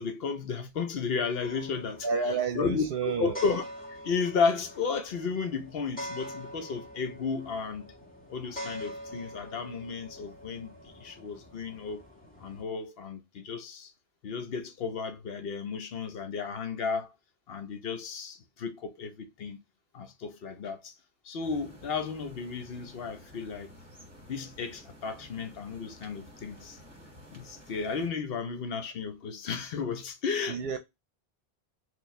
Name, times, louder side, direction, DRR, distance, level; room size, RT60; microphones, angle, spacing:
voice 1, 0.0-2.1 2.5-7.9 8.3-12.0 12.4-13.9 14.2-17.1 17.5-19.6 19.9-20.9 21.2-23.7 24.3-26.8 27.3-30.8, left 5 dB, 70° left, 0.9 m, -33 dB
sound 1, 1.4-12.6, equal, 10° left, 1.5 m, -45 dB
voice 2, 2.0-3.4 30.5-30.8, right 5 dB, 70° right, 0.8 m, -30 dB
sound 2, 21.4-28.1, equal, 15° right, 1.3 m, -52 dB
4.4 x 2.4 x 3.1 m
omnidirectional pair, 1.0 m